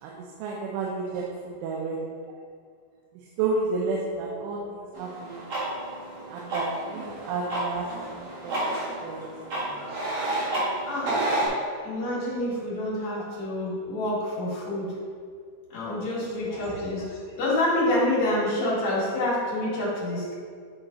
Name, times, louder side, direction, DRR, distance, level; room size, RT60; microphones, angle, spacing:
voice 1, 0.0-2.0 3.4-5.5 6.3-8.6 9.0-10.0 16.1-16.2 16.4-16.8, right 3 dB, 85° right, -3 dB, 3.2 m, -32 dB
sound 1, 4.9-11.5, right 1 dB, 70° right, 1.2 m, -31 dB
voice 2, 11.8-14.9 15.7-20.3, left 1 dB, 45° left, -8 dB, 2.5 m, -27 dB
10.5 x 3.9 x 3.9 m, 2.1 s
omnidirectional pair, 5.5 m